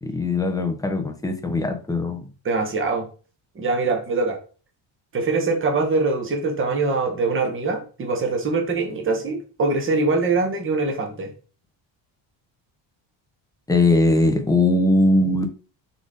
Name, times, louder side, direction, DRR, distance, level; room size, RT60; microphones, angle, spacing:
voice 1, 0.0-2.3 13.7-15.5, left 2 dB, 10° left, 5 dB, 0.5 m, -20 dB
voice 2, 2.4-3.1 3.5-4.4 5.1-11.3, right 3 dB, 25° right, 3 dB, 1.0 m, -23 dB
4.1 x 3.4 x 3.7 m, 0.37 s
cardioid pair, 165°, 49 cm